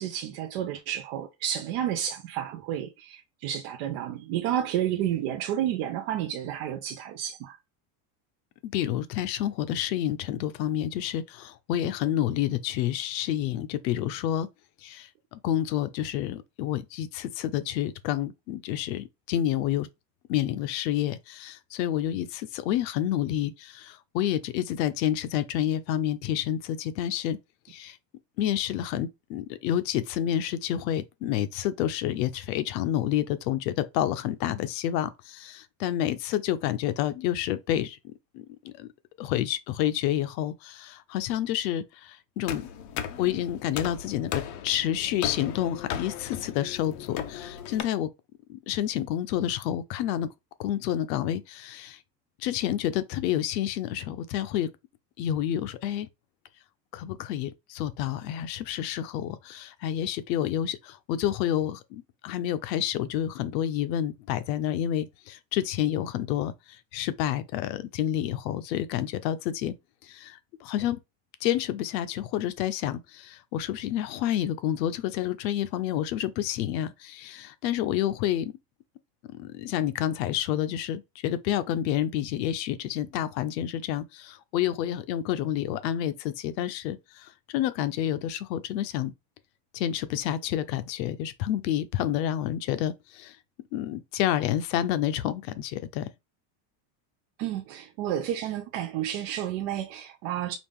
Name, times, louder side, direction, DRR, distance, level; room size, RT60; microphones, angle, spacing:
voice 1, 0.0-7.6 97.4-100.5, right 11 dB, 40° right, 0.4 m, -31 dB
voice 2, 8.6-14.5 14.8-19.9 20.3-27.4 27.7-28.0 28.4-38.9 39.2-42.7 43.2-48.1 48.5-50.3 50.6-52.0 52.4-54.7 55.2-56.1 56.9-69.7 70.0-71.0 71.4-78.5 79.3-89.1 89.7-93.4 93.7-96.1, left 11 dB, 85° left, 0.8 m, -29 dB
sound 1, 42.5-47.8, left 9 dB, 40° left, 0.5 m, -36 dB
5.0 x 2.5 x 3.6 m
cardioid pair, 170°, 49 cm